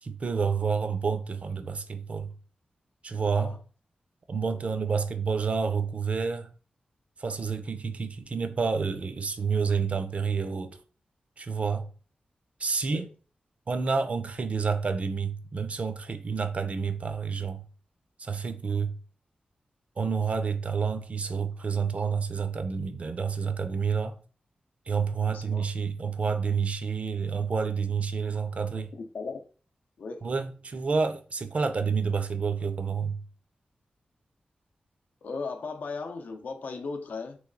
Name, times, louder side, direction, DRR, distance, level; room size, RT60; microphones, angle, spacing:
voice 1, 0.0-2.3 3.0-3.6 4.3-6.5 7.2-10.8 11.4-11.9 12.6-13.1 13.7-17.6 18.2-18.9 20.0-24.2 24.9-28.9 30.2-33.2, right 5 dB, 50° right, 0.4 m, -29 dB
voice 2, 25.2-25.7 28.9-29.4 30.0-30.3 35.2-37.4, left 4 dB, 85° left, 0.6 m, -37 dB
3.1 x 3.1 x 3.8 m
wide cardioid pair, 125°, 3 cm